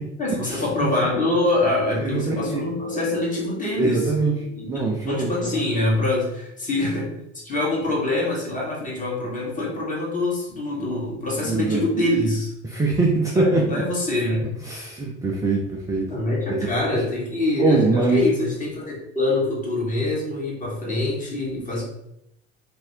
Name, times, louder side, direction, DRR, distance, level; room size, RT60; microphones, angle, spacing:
voice 1, 0.2-4.1 4.6-4.7 5.1-7.1 7.4-12.5 13.3-14.5 16.1-21.8, left 2 dB, 20° left, -4 dB, 1.5 m, -25 dB
voice 2, 2.0-2.6 3.7-4.3 4.7-5.6 11.4-11.8 12.6-13.8 14.6-16.1 16.5-16.7 17.6-18.2 21.7-21.8, right 3 dB, 10° right, -1 dB, 0.4 m, -22 dB
Bass guitar, 2.4-6.6, left 1 dB, 75° right, 0.6 m, -37 dB
3.3 x 2.8 x 3.1 m, 0.80 s
figure-of-eight pair, 60°, 38 cm